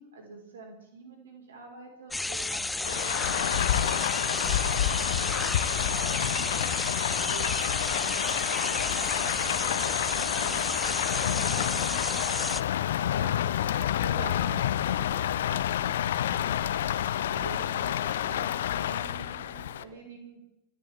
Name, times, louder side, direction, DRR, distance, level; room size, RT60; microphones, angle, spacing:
voice 1, 0.0-12.2 13.1-15.8 16.2-20.4, right 3 dB, 65° right, 1 dB, 5.2 m, -46 dB
sound 1, 2.1-12.6, left 2 dB, 5° left, 0.5 m, -32 dB
Rain, 2.8-19.8, left 11 dB, 60° left, 0.7 m, -29 dB
27.5 x 13.5 x 3.7 m, 0.87 s
figure-of-eight pair, 90°, 0 cm